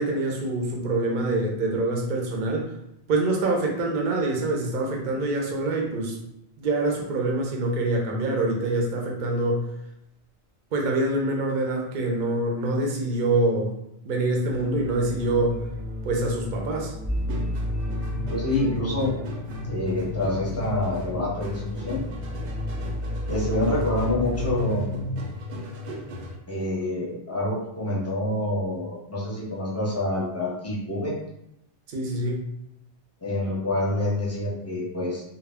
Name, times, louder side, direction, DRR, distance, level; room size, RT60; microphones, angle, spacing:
voice 1, 0.0-2.7 3.1-6.2 6.6-9.7 10.7-13.8 14.0-15.6 16.0-16.9 31.9-32.5, right 2 dB, 55° right, 0 dB, 0.6 m, -25 dB
sound 1, 14.5-24.5, left 1 dB, 10° right, 0.8 m, -32 dB
sound 2, 17.1-26.3, left 1 dB, 85° right, 0.9 m, -35 dB
voice 2, 18.3-19.1 19.7-22.0 23.3-24.9 26.5-31.1 33.2-35.2, left 1 dB, 15° left, -6 dB, 0.6 m, -27 dB
2.2 x 2.0 x 3.4 m, 0.79 s
omnidirectional pair, 1.1 m